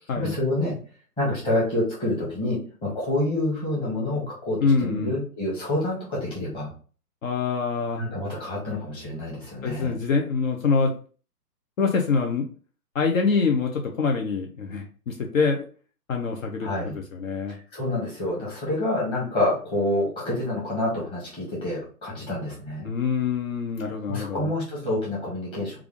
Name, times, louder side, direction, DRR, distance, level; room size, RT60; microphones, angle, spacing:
voice 1, 0.2-0.8 1.2-6.7 8.0-10.0 16.6-17.0 17.5-22.9 24.1-25.8, left 1 dB, 10° left, -6 dB, 1.1 m, -27 dB
voice 2, 4.6-5.1 7.2-8.0 9.6-10.9 11.8-12.4 12.9-15.6 16.1-16.7 16.9-17.6 22.8-24.5, left 5 dB, 55° left, 2 dB, 0.7 m, -25 dB
3.4 x 2.4 x 3.5 m, 0.40 s
hypercardioid pair, 140°, 49 cm